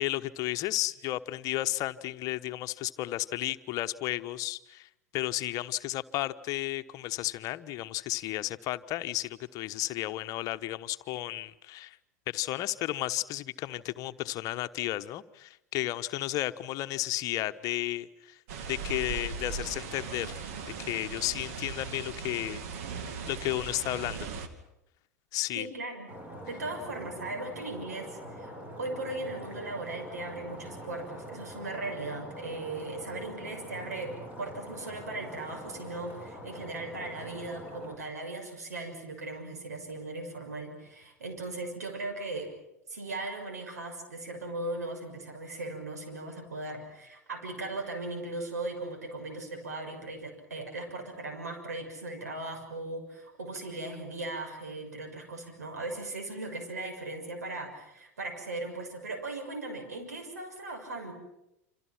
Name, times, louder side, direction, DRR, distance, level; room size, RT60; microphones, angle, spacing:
voice 1, 0.0-12.0 12.3-20.5 20.8-23.0 23.3-24.3 25.3-25.7, left 16 dB, 45° left, 11 dB, 1.2 m, -33 dB
sound 1, 18.5-24.5, right 5 dB, 60° right, 2.7 m, -38 dB
voice 2, 25.5-26.1 26.5-42.5 42.9-61.1, right 2 dB, 80° right, 4 dB, 6.4 m, -38 dB
Stream, 26.1-38.0, equal, 20° right, 7.7 m, -44 dB
28.0 x 27.0 x 6.0 m, 0.85 s
figure-of-eight pair, 85°, 9 cm